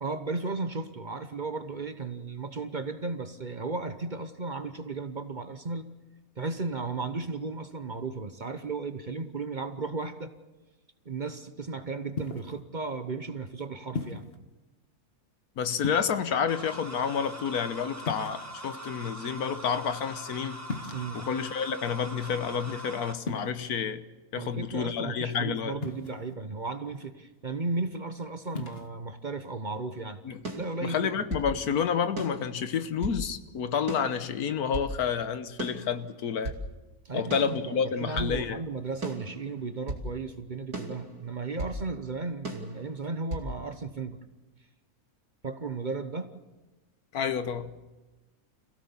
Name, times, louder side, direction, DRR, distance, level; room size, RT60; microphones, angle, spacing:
voice 1, 0.0-5.9 6.4-10.3 11.0-14.3 20.9-21.2 24.4-30.2 30.5-31.3 37.0-44.2 45.4-46.3, right 3 dB, 35° right, 1.0 m, -35 dB
sound 1, 12.2-12.6 13.9-14.4 15.8-16.4 18.0-18.8 20.6-21.2 23.2-23.5 25.8-26.3 28.5-28.9, left 4 dB, 40° left, 1.5 m, -36 dB
voice 2, 15.6-20.6 21.1-24.0 24.3-25.8 30.2-30.4 30.8-36.6 37.1-38.6 47.1-47.9, left 7 dB, 85° left, 1.5 m, -29 dB
sound 2, 16.5-23.1, right 1 dB, 10° right, 1.0 m, -42 dB
sound 3, 30.4-31.5 32.2-33.2 33.9-34.9 35.6-36.6 37.3-38.4 39.0-40.1 40.7-41.8 42.4-43.5, right 2 dB, 85° right, 3.1 m, -37 dB
27.0 x 16.5 x 7.2 m
omnidirectional pair, 1.6 m